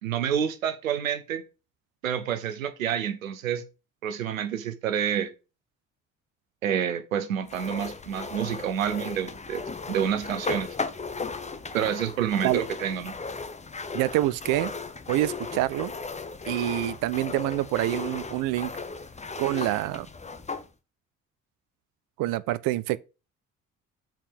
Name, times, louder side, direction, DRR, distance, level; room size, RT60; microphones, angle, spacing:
voice 1, 0.0-1.4 2.0-3.6 4.0-5.3 6.6-9.6 9.9-10.7 11.7-13.1, right 9 dB, 90° right, 0.7 m, -28 dB
sound 1, 7.5-20.7, left 4 dB, 15° left, 0.8 m, -36 dB
voice 2, 13.9-14.7 15.1-15.9 16.5-18.7 19.4-20.1 22.2-23.0, right 16 dB, 55° right, 0.5 m, -26 dB
7.4 x 4.4 x 5.2 m
figure-of-eight pair, 50°, 39 cm